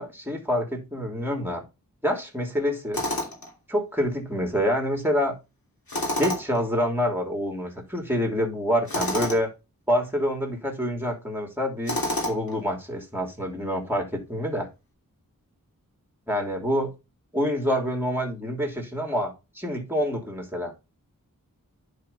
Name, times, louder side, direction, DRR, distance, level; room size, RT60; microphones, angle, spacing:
voice 1, 0.0-1.6 2.0-3.0 3.7-5.3 6.2-9.5 9.9-12.0 12.3-14.7 16.3-16.9 17.3-20.7, equal, 5° right, 3.1 m, -27 dB
Tools, 2.9-3.5 5.9-6.6 8.9-9.4 11.9-12.6, left 1 dB, 85° left, 3.0 m, -28 dB
10.5 x 5.1 x 4.2 m
wide cardioid pair, 50°, 35 cm